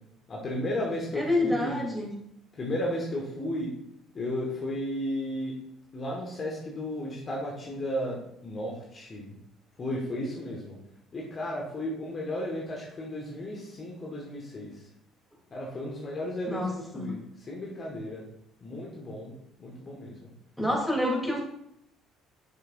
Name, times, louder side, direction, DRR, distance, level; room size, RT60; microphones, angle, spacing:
voice 1, 0.3-1.8 2.6-3.7 4.1-5.5 5.9-9.4 9.8-10.8 11.1-14.7 15.5-17.2 17.5-18.2 18.6-19.3 19.6-20.3, left 1 dB, 35° left, -2 dB, 1.8 m, -34 dB
voice 2, 1.1-2.1 16.5-17.1 20.6-21.4, left 1 dB, ahead, -3 dB, 3.3 m, -28 dB
9.8 x 6.5 x 2.7 m, 0.77 s
figure-of-eight pair, 50°, 0 cm